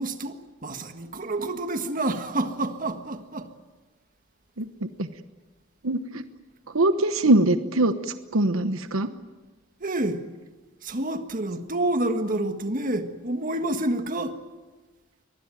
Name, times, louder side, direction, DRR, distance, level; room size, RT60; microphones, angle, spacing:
voice 1, 0.0-3.5 9.8-10.2 10.8-14.4, right 1 dB, 40° right, 1.6 m, -28 dB
voice 2, 4.6-5.1 5.8-6.2 6.7-7.9 8.3-9.1, right 2 dB, 85° right, 1.1 m, -22 dB
23.5 x 20.0 x 9.2 m
head